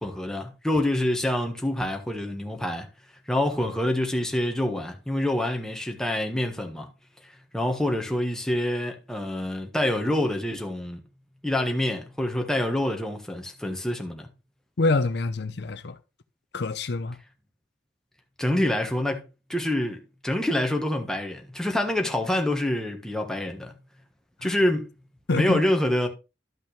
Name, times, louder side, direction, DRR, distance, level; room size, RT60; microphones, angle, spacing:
voice 1, 0.0-2.9 3.3-6.9 7.5-11.0 11.4-14.3 18.4-19.2 19.5-23.7 24.4-24.9 25.3-26.1, left 1 dB, 5° left, 1.4 m, -26 dB
voice 2, 14.8-16.0 16.5-17.2 24.4-24.5 25.3-25.6, left 3 dB, 70° left, 0.6 m, -26 dB
12.5 x 5.6 x 3.3 m
head